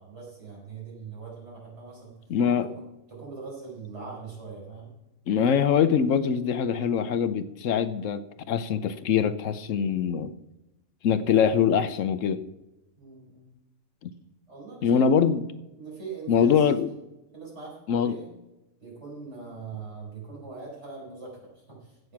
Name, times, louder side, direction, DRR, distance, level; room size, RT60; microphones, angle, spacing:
voice 1, 0.0-2.2 3.1-4.9 13.0-13.5 14.5-15.4 15.8-16.7 17.3-18.3 18.8-22.1, right 4 dB, 55° right, -4 dB, 5.4 m, -41 dB
voice 2, 2.3-2.7 5.3-10.3 11.0-12.4 14.8-15.4 16.3-16.9 17.9-18.2, left 7 dB, 75° left, 13 dB, 1.1 m, -23 dB
16.0 x 6.8 x 5.9 m, 0.95 s
omnidirectional pair, 1.4 m